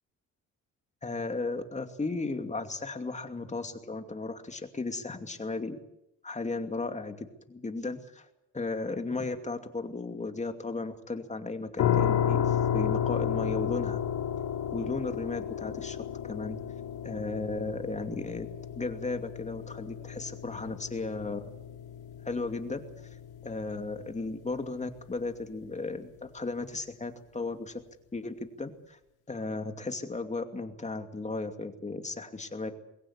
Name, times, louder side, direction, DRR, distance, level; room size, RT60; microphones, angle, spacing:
voice 1, 1.0-5.8 6.2-8.3 8.5-14.0 14.7-16.0 16.2-16.6 17.0-18.5 18.8-21.5 22.2-22.8 23.4-26.1 26.3-27.8 28.1-29.0 29.3-32.7, left 3 dB, 25° left, 7 dB, 2.6 m, -35 dB
sound 1, 11.8-24.6, left 9 dB, 80° left, 2.5 m, -32 dB
21.5 x 17.5 x 8.2 m, 0.84 s
cardioid pair, 90°, 30 cm